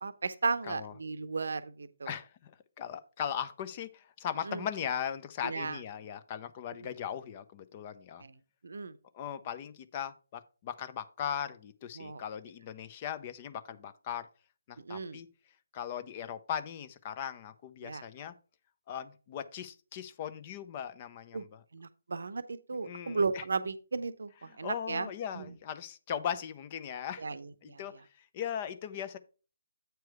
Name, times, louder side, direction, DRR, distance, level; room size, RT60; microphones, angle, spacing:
voice 1, 0.0-2.2 4.5-4.6 5.4-5.8 8.2-8.3 8.6-9.0 12.0-12.2 14.9-15.2 17.8-18.0 21.3-21.4 21.7-24.3 24.6-25.1 25.3-25.5 27.2-27.8, right 4 dB, 60° right, 0.7 m, -35 dB
voice 2, 0.6-0.9 2.0-2.5 2.8-8.2 9.1-14.3 14.7-15.3 15.7-18.3 18.9-21.6 22.8-23.5 24.5-27.3 27.6-29.2, left 9 dB, 30° left, 0.7 m, -38 dB
8.3 x 4.6 x 4.7 m
figure-of-eight pair, 145°, 0 cm